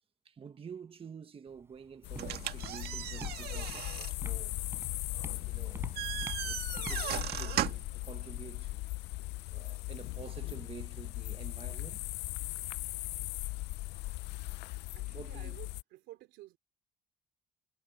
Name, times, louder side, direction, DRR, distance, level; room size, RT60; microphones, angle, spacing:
voice 1, 0.2-4.6 5.3-5.9 6.4-6.6 6.9-8.8 9.5-12.1 15.0-15.6, right 6 dB, 35° right, 1.4 m, -49 dB
Walk footsteps, 1.5-9.4, right 2 dB, 15° right, 6.1 m, -50 dB
sound 1, 2.0-15.8, left 19 dB, 85° left, 0.5 m, -38 dB
sound 2, 2.2-8.0, right 13 dB, 70° right, 1.7 m, -38 dB
voice 2, 14.9-16.6, right 16 dB, 90° right, 2.8 m, -52 dB
cardioid pair, 110°, 17 cm